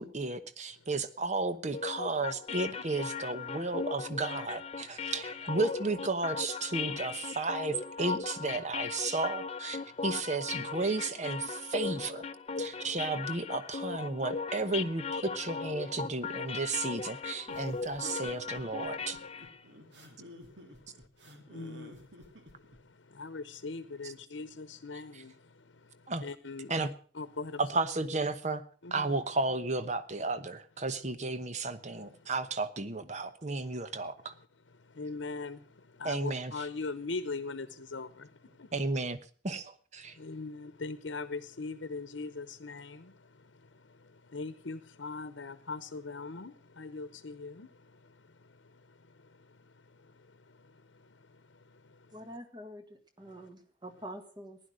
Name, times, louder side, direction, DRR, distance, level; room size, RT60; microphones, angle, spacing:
voice 1, 0.0-12.2 12.6-19.2 26.1-26.2 26.7-26.9 27.6-28.6 28.9-34.3 36.0-36.5 38.7-39.2 39.4-40.2, right 3 dB, 40° right, 1.0 m, -33 dB
sound 1, 1.7-19.6, left 5 dB, 35° left, 0.7 m, -38 dB
sound 2, 17.5-22.8, equal, 70° right, 2.6 m, -52 dB
voice 2, 18.9-19.3 19.6-26.8 27.1-27.6 28.8-29.1 31.9-32.3 33.6-34.0 34.2-34.3 34.7-38.7 40.0-52.3 53.3-53.5, left 3 dB, 90° left, 0.9 m, -43 dB
voice 3, 52.1-54.6, equal, 25° right, 1.8 m, -46 dB
15.5 x 11.0 x 6.4 m
head